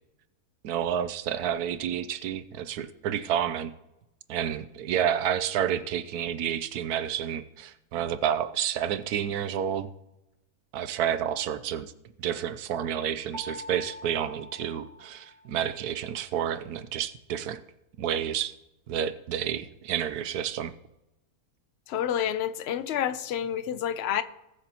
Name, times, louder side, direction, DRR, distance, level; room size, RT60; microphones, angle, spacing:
voice 1, 0.6-3.7 4.3-9.9 10.7-11.9 12.2-17.6 18.0-18.5 18.9-20.7, right 9 dB, 85° right, 1.2 m, -30 dB
Mallet percussion, 13.3-15.8, left 1 dB, 5° left, 2.3 m, -45 dB
voice 2, 21.9-24.2, left 10 dB, 55° left, 0.8 m, -29 dB
20.5 x 8.2 x 3.0 m
omnidirectional pair, 1.6 m